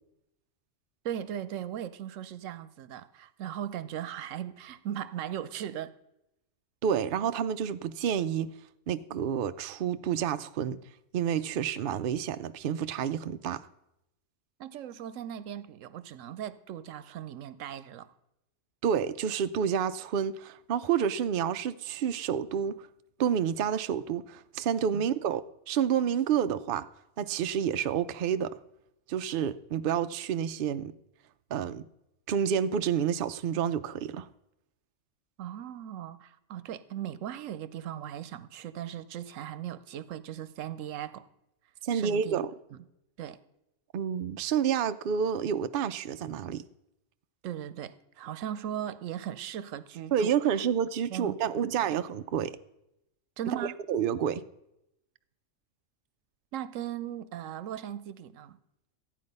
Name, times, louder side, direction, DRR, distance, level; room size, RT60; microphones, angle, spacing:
voice 1, 1.0-5.9 14.6-18.1 24.9-25.1 35.4-41.3 41.9-42.4 42.7-42.8 43.2-43.4 47.4-50.6 51.1-52.0 53.4-53.8 56.5-58.6, right 10 dB, 85° right, 1.0 m, -38 dB
voice 2, 6.8-8.5 8.9-10.8 11.1-13.7 18.8-22.9 23.2-26.9 27.2-28.6 29.1-30.9 31.5-31.9 32.3-34.3 41.8-42.5 43.9-46.6 50.1-52.6 53.6-54.4, right 8 dB, 60° right, 0.6 m, -29 dB
13.5 x 9.2 x 5.3 m
omnidirectional pair, 1.3 m